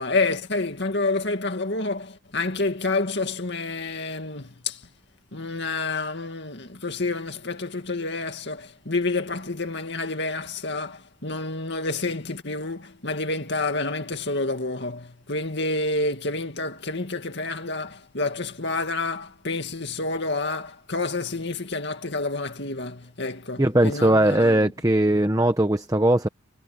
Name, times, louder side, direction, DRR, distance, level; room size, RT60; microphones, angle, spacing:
voice 1, 0.0-4.9 5.3-24.7, left 3 dB, 55° left, 2.3 m, -29 dB
voice 2, 23.6-26.3, right 1 dB, 15° right, 1.0 m, -19 dB
head